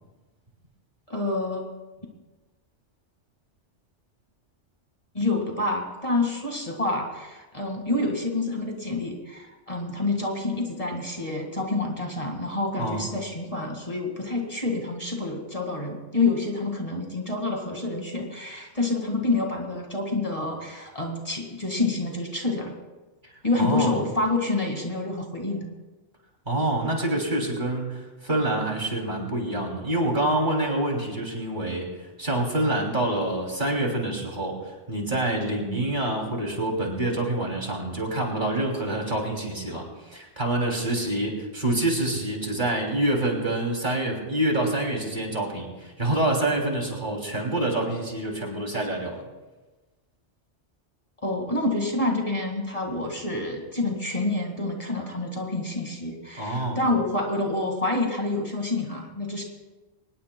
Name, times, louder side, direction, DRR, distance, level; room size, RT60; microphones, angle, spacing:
voice 1, 1.1-1.7 5.1-22.7 23.4-25.7 51.2-59.4, left 2 dB, 30° left, 1 dB, 2.0 m, -28 dB
voice 2, 23.6-24.0 26.5-31.9 32.2-49.2 56.4-56.8, right 1 dB, 45° right, 0 dB, 3.1 m, -26 dB
24.5 x 19.5 x 2.3 m, 1.2 s
omnidirectional pair, 1.1 m